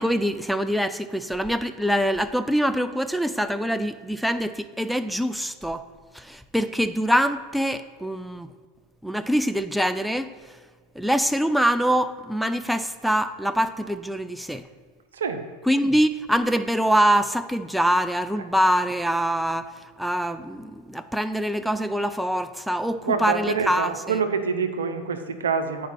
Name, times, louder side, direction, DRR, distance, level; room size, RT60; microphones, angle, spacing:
voice 1, 0.0-5.8 6.1-8.5 9.0-10.3 11.0-14.7 15.7-23.9, equal, ahead, 10 dB, 0.3 m, -24 dB
voice 2, 15.1-15.4 23.0-25.9, right 5 dB, 80° right, 7 dB, 0.6 m, -26 dB
8.5 x 4.8 x 5.6 m, 1.5 s
hypercardioid pair, 90°, 0 cm